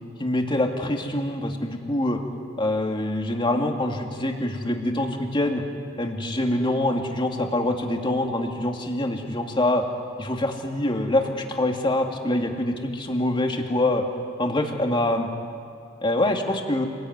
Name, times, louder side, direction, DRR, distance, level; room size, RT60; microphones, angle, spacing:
voice 1, 0.2-2.2 2.6-5.6 6.0-9.8 10.2-14.0 14.4-15.3 16.0-16.9, left 1 dB, 25° left, 2 dB, 2.4 m, -25 dB
28.0 x 20.5 x 9.6 m, 2.4 s
head